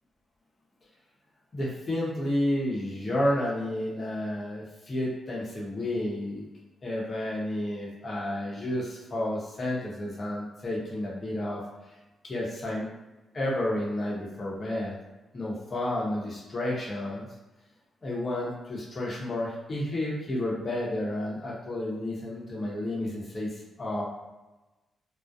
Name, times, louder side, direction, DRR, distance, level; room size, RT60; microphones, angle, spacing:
voice 1, 1.5-6.4 6.8-11.6 12.2-12.9 13.3-15.0 15.3-17.3 18.0-24.0, left 1 dB, 40° left, -5 dB, 0.8 m, -31 dB
2.3 x 2.0 x 2.7 m, 1.1 s
cardioid pair, 65°, 0 cm